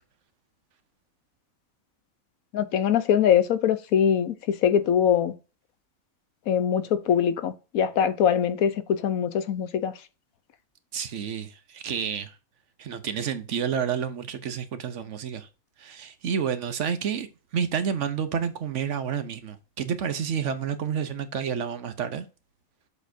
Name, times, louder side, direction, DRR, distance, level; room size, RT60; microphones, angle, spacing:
voice 1, 2.5-5.3 6.5-9.9, left 8 dB, 85° left, 1.2 m, -23 dB
voice 2, 10.9-12.3 12.8-15.5 15.8-22.3, right 7 dB, 65° right, 1.1 m, -30 dB
7.2 x 6.4 x 2.7 m
omnidirectional pair, 1.4 m